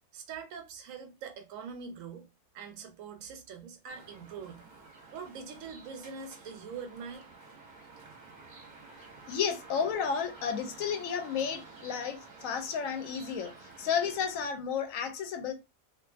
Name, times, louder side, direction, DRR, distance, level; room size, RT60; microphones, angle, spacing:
voice 1, 0.1-2.3 2.5-4.6 5.1-7.2, right 6 dB, 85° right, 1.0 m, -43 dB
sound 1, 3.9-14.5, right 3 dB, 45° right, 0.7 m, -51 dB
voice 2, 8.9-15.5, left 7 dB, 85° left, 1.0 m, -32 dB
2.5 x 2.3 x 2.4 m
omnidirectional pair, 1.4 m